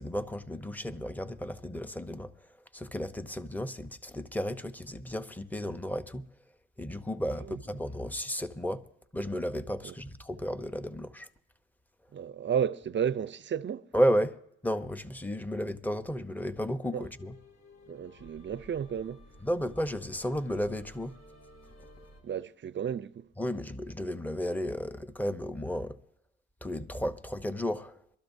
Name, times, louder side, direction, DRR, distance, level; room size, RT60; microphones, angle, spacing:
voice 1, 0.0-2.3 2.7-6.2 6.8-8.9 9.1-11.3 13.9-14.4 14.6-17.3 19.4-21.2 23.4-26.0 26.6-28.0, equal, 5° left, 0.7 m, -33 dB
voice 2, 12.1-13.9 16.9-17.1 17.9-19.2 22.2-23.3, right 8 dB, 40° right, 0.5 m, -32 dB
sound 1, 17.0-22.2, left 1 dB, 60° left, 3.6 m, -54 dB
23.5 x 13.0 x 2.7 m
cardioid pair, 90°, 30 cm